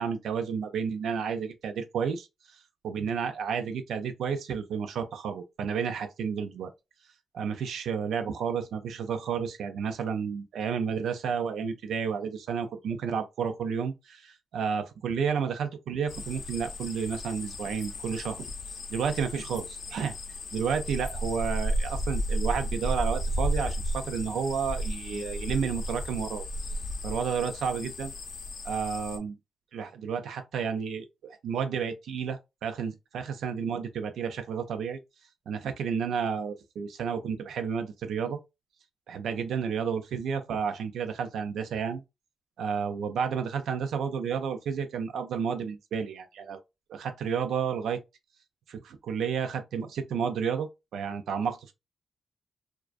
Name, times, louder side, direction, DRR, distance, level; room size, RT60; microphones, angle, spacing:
voice 1, 0.0-6.7 7.3-18.5 18.9-20.1 20.5-26.5 27.0-28.1 28.6-29.4 29.7-35.0 35.5-38.4 39.1-42.0 42.6-46.6 46.9-48.0 48.7-51.7, right 6 dB, 85° right, 0.3 m, -31 dB
sound 1, 16.1-29.2, equal, 60° left, 0.5 m, -33 dB
2.4 x 2.2 x 2.3 m
wide cardioid pair, 130°, 0 cm